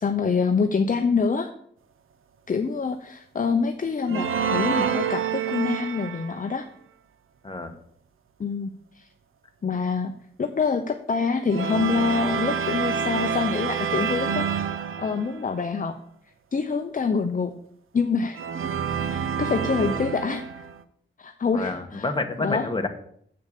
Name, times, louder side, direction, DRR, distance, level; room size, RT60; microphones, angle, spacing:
voice 1, 0.0-1.5 2.5-6.7 8.4-9.1 9.6-10.1 10.4-14.7 15.0-16.0 16.5-17.5 17.9-18.4 19.0-20.6 21.2-22.1 22.4-22.7, left 5 dB, 40° left, 6 dB, 0.7 m, -26 dB
sound 1, 4.1-6.5 11.5-15.5 18.4-20.8, right 7 dB, 80° right, 0.7 m, -28 dB
voice 2, 7.4-7.7 21.5-22.9, left 2 dB, 25° left, 5 dB, 1.4 m, -28 dB
7.9 x 6.7 x 6.6 m, 0.65 s
wide cardioid pair, 85°, 21 cm